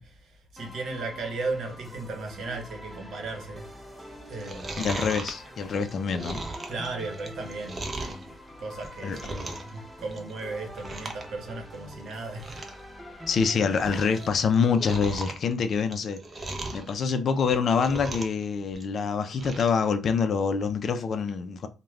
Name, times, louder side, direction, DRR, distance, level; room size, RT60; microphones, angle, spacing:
voice 1, 0.0-4.8 6.7-8.3 8.6-12.6, right 3 dB, 70° right, 0.9 m, -36 dB
sound 1, 0.6-14.3, equal, 5° right, 0.8 m, -45 dB
Chewing mastication, 4.3-8.2 8.7-9.8 10.0-10.4 10.7-11.3 11.5-11.6 12.1-12.2 12.4-12.8 13.2-14.3 14.5-16.9 17.4-18.4 18.7-19.8 20.2-20.3, right 2 dB, 35° right, 0.5 m, -37 dB
voice 2, 4.8-6.4 9.0-9.2 13.3-21.7, left 5 dB, 55° left, 0.4 m, -26 dB
2.3 x 2.1 x 3.2 m
cardioid pair, 90°, 0 cm